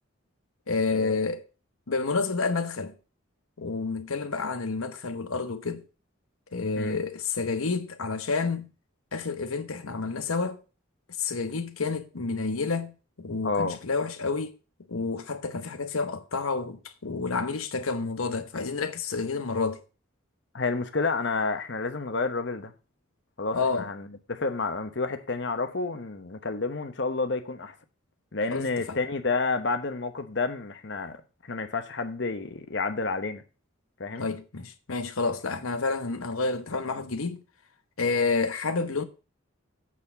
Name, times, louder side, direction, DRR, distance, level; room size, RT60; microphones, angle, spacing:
voice 1, 0.7-1.4 1.9-2.9 3.6-5.8 6.5-8.7 9.1-10.6 11.2-14.5 14.9-19.8 23.5-23.9 28.5-29.0 34.2-37.4 38.0-39.0, left 4 dB, 85° left, 1.0 m, -29 dB
voice 2, 13.4-13.8 20.5-22.7 23.4-27.7 28.3-33.4 34.0-34.3, left 3 dB, 55° left, 1.0 m, -30 dB
8.4 x 4.3 x 7.1 m
head